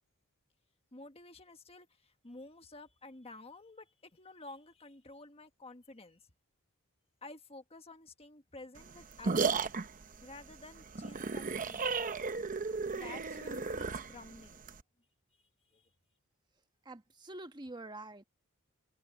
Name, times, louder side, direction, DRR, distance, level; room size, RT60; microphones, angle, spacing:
voice 1, 0.9-6.2 7.2-9.7 10.2-11.9 12.9-14.6 15.7-15.8, left 2 dB, 25° left, 1.4 m, -51 dB
sound 1, 8.8-14.8, right 4 dB, 40° right, 0.8 m, -35 dB
voice 2, 16.8-18.2, right 2 dB, 20° right, 1.3 m, -46 dB
head